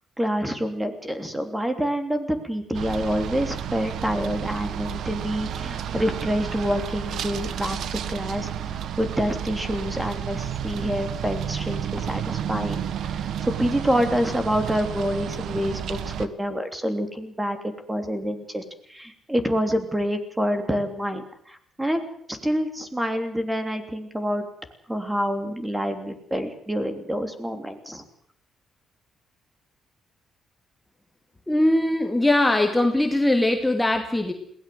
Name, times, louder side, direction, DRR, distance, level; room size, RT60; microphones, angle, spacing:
voice 1, 0.2-8.5 9.0-17.6 17.9-18.6 18.9-22.0 22.3-24.4 24.9-28.0, equal, 10° right, 7 dB, 3.3 m, -27 dB
sound 1, 2.7-16.3, right 9 dB, 70° right, 1.3 m, -31 dB
voice 2, 31.5-34.3, left 1 dB, 10° left, 4 dB, 2.4 m, -21 dB
21.5 x 17.5 x 7.9 m, 0.66 s
cardioid pair, 90°, 0 cm